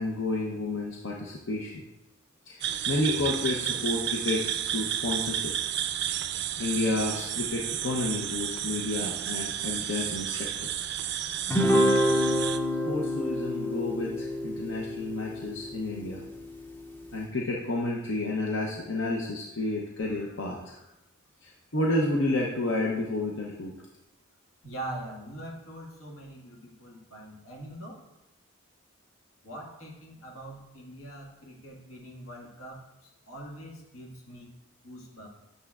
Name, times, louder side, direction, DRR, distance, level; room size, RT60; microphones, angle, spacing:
voice 1, 0.0-1.7 2.5-5.8 6.6-10.9 12.9-16.2 17.1-20.7 21.7-23.7, left 2 dB, 60° left, -2 dB, 0.7 m, -30 dB
sound 1, 2.6-12.6, right 10 dB, 50° right, 0.4 m, -32 dB
Guitar, 11.5-16.1, equal, 10° left, 0.5 m, -27 dB
voice 2, 24.6-28.0 29.4-34.5 34.8-35.3, right 1 dB, 80° left, -2 dB, 1.7 m, -43 dB
9.0 x 6.7 x 2.4 m, 0.94 s
head